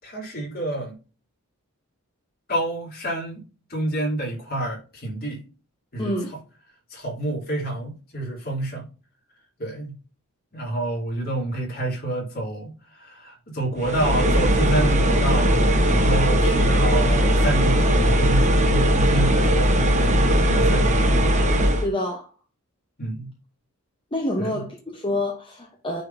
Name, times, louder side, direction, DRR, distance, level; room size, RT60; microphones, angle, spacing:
voice 1, 0.0-0.9 2.5-3.4 3.7-5.4 5.9-6.1 6.9-8.8 9.6-9.9 10.5-21.3 23.0-23.3 24.4-24.6, right 1 dB, 45° left, 3.3 m, -28 dB
voice 2, 6.0-6.3 21.8-22.3 24.1-26.0, left 1 dB, 25° left, 1.0 m, -27 dB
sound 1, 13.8-21.9, equal, 30° right, 1.0 m, -19 dB
9.2 x 4.1 x 2.7 m
head